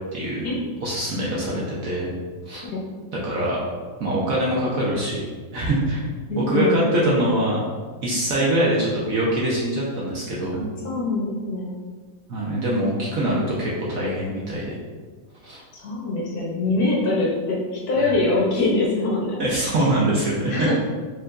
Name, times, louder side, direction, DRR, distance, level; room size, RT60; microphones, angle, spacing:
voice 1, 0.1-0.5 0.8-2.1 2.5-2.6 3.2-3.6 4.0-5.3 5.5-6.0 6.4-7.6 8.0-10.6 12.3-14.8 15.4-15.6 18.0-18.1 19.4-20.7, right 1 dB, 60° right, -5 dB, 1.0 m, -23 dB
voice 2, 6.3-7.1 10.5-11.8 15.7-19.4 20.5-20.7, left 2 dB, 60° left, -4 dB, 1.1 m, -24 dB
4.8 x 3.8 x 2.4 m, 1.5 s
omnidirectional pair, 2.0 m